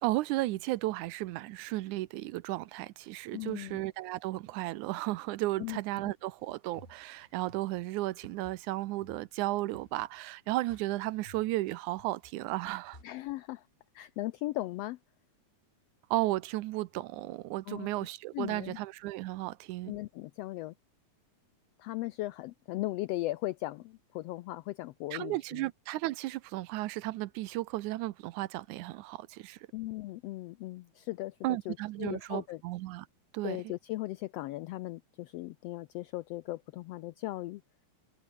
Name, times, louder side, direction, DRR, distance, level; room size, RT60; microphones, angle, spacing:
voice 1, 0.0-13.0 16.1-20.0 25.1-29.6 31.4-33.1 33.3-33.7, right 17 dB, 85° right, 2.2 m, -34 dB
voice 2, 3.3-3.8 5.6-5.8 13.0-13.6 13.9-15.0 17.7-17.9 18.3-18.8 19.9-20.7 21.8-25.6 29.7-32.6 33.4-37.6, left 17 dB, 85° left, 1.4 m, -38 dB
sound 1, 6.4-13.0, left 1 dB, 15° left, 5.3 m, -57 dB
omnidirectional pair, 3.4 m